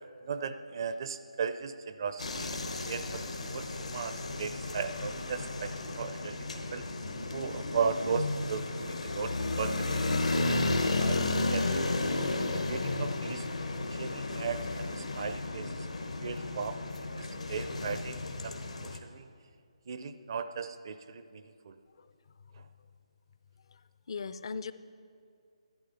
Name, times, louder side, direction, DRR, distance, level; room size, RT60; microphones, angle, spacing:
voice 1, 0.2-2.6 2.9-6.8 7.3-10.0 10.3-11.2 11.5-11.8 12.5-13.5 13.9-15.9 16.2-18.2 18.4-19.3 19.9-21.8, right 6 dB, 40° right, 10 dB, 0.5 m, -37 dB
sound 1, 2.2-19.0, left 2 dB, 80° left, 1.1 m, -33 dB
voice 2, 24.1-24.7, left 5 dB, 50° left, 13 dB, 0.5 m, -39 dB
12.0 x 11.5 x 4.1 m, 2.3 s
figure-of-eight pair, 155°, 4 cm